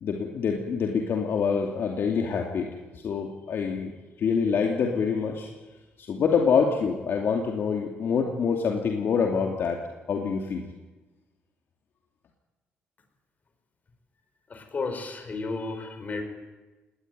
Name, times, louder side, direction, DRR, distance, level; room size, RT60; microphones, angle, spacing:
voice 1, 0.0-2.7 2.9-3.9 4.2-5.5 6.0-9.8 10.1-10.6, left 6 dB, 60° left, 2 dB, 2.7 m, -26 dB
voice 2, 14.5-16.2, left 3 dB, 40° left, 6 dB, 4.9 m, -33 dB
19.5 x 18.5 x 9.4 m, 1.2 s
cardioid pair, 95°, 4 cm